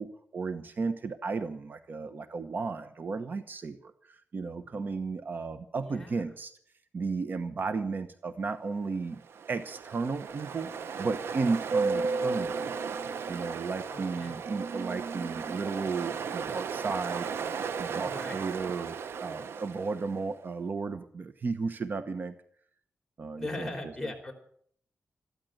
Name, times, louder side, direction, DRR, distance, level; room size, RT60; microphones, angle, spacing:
voice 1, 0.0-6.5 6.9-9.2 9.5-10.7 11.0-12.9 13.3-17.3 17.8-22.3 23.2-23.7, right 4 dB, 55° right, 11 dB, 1.0 m, -34 dB
voice 2, 5.7-6.2 13.9-14.4 18.0-18.4 23.4-24.3, left 2 dB, 10° left, 2 dB, 4.2 m, -39 dB
Ocean, 9.1-20.2, right 5 dB, 85° right, 0.8 m, -34 dB
14.0 x 13.0 x 7.9 m, 0.63 s
wide cardioid pair, 100°, 4 cm